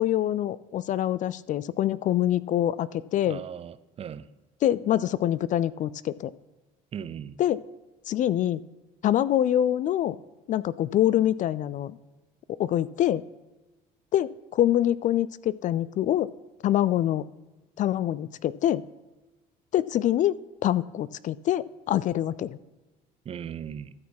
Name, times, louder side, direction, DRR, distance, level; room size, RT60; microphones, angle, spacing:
voice 1, 0.0-3.4 4.6-6.3 7.4-7.6 8.1-8.6 9.0-10.2 10.5-12.0 12.5-13.2 14.1-16.3 16.6-17.2 17.8-18.8 19.7-20.4 20.6-22.6, left 12 dB, 45° left, 19 dB, 0.4 m, -25 dB
voice 2, 3.2-4.3 6.9-7.4 23.3-23.9, right 8 dB, 35° right, 16 dB, 0.5 m, -38 dB
13.0 x 6.4 x 5.9 m, 1.1 s
supercardioid pair, 100°, 18 cm